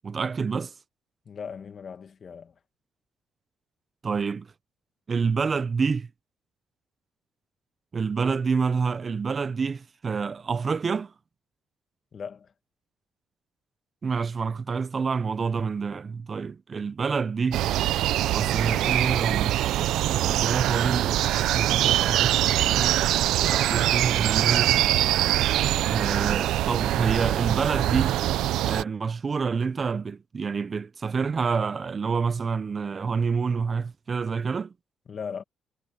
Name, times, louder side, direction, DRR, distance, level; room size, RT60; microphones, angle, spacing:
voice 1, 0.0-0.7 4.0-4.5 5.1-6.1 7.9-11.1 14.0-17.7 18.3-21.2 21.5-23.0 23.4-24.8 25.9-28.2 28.6-34.7, right 5 dB, 40° right, 0.6 m, -28 dB
voice 2, 1.3-2.5 12.1-12.5 35.1-35.4, left 6 dB, 50° left, 2.2 m, -38 dB
sound 1, 17.5-28.8, right 14 dB, 85° right, 0.5 m, -23 dB
cardioid pair, 90°, 0 cm